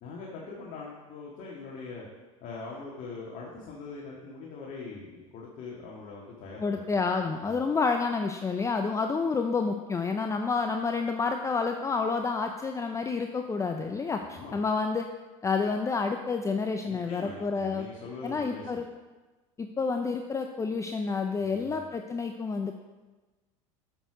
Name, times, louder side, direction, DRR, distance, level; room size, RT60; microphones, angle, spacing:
voice 1, 0.0-2.1 2.4-6.8 7.4-7.6 14.2-14.6 16.8-18.7 21.4-21.8, left 4 dB, 50° left, -3 dB, 1.8 m, -42 dB
voice 2, 6.6-15.1 15.4-17.9 18.2-18.8 19.6-22.7, left 4 dB, 15° left, 5 dB, 0.5 m, -29 dB
7.8 x 6.6 x 5.0 m, 1.2 s
hypercardioid pair, 90°, 17 cm